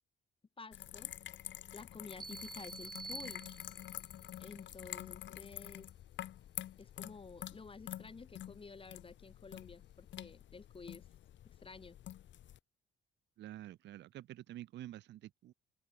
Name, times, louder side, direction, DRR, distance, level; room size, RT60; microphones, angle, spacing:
voice 1, 0.6-1.1 1.7-3.4 4.4-5.9 6.8-11.1 11.4-12.0, left 4 dB, 25° left, 1.5 m, -52 dB
sound 1, 0.7-12.6, left 12 dB, 70° left, 1.2 m, -48 dB
sound 2, 2.2-4.1, right 3 dB, 20° right, 1.4 m, -48 dB
voice 2, 13.4-15.5, right 13 dB, 65° right, 0.5 m, -49 dB
open air
cardioid pair, 90°, 20 cm